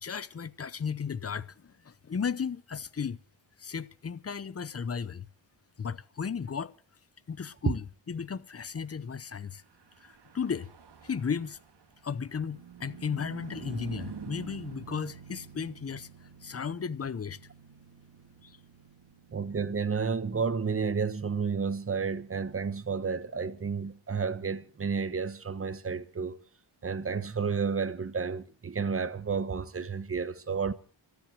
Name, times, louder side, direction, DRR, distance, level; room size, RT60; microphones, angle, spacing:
voice 1, 0.0-3.2 3.6-5.2 5.8-6.7 7.3-9.6 10.0-10.7 11.0-11.6 12.0-17.4 18.4-18.6, left 6 dB, 30° left, 0.7 m, -35 dB
Car passing by / Truck, 9.5-23.2, right 7 dB, 55° right, 1.9 m, -49 dB
voice 2, 19.3-26.4 26.8-30.7, right 5 dB, 30° right, 1.1 m, -31 dB
26.0 x 10.5 x 4.7 m
wide cardioid pair, 180°, 47 cm